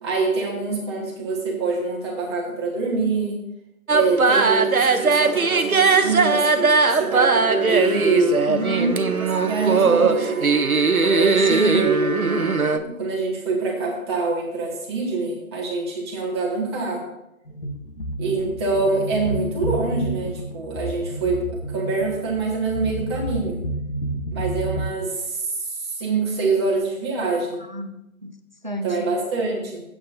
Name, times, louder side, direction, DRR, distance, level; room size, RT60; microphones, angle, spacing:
voice 1, 0.0-3.4 3.9-8.4 9.2-10.5 11.0-17.1 18.2-23.6 24.3-27.6 28.8-29.8, right 3 dB, 20° right, -3 dB, 1.9 m, -25 dB
sound 1, 3.9-12.8, right 4 dB, 90° right, 0.9 m, -19 dB
voice 2, 8.4-9.1 11.5-11.9 27.7-28.3 28.6-29.1, equal, 35° right, 8 dB, 0.4 m, -28 dB
sound 2, 17.5-24.8, right 1 dB, 40° left, 1.1 m, -30 dB
14.0 x 8.6 x 2.7 m, 0.89 s
figure-of-eight pair, 150°, 41 cm